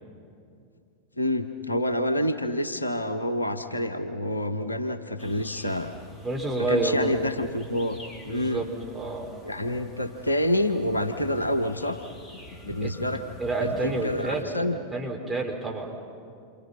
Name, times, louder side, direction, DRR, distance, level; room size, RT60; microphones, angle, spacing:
voice 1, 1.2-5.9 6.6-8.0 8.2-8.6 9.4-12.0 12.6-13.2 13.6-14.8, left 1 dB, 80° left, 9 dB, 1.0 m, -27 dB
sound 1, 5.2-14.4, left 1 dB, 15° left, 3.1 m, -47 dB
voice 2, 6.2-7.1 8.3-9.3 12.8-12.9 13.4-14.5 14.9-16.0, right 2 dB, 5° right, -3 dB, 4.3 m, -29 dB
28.0 x 26.0 x 5.8 m, 2.5 s
figure-of-eight pair, 90°, 0 cm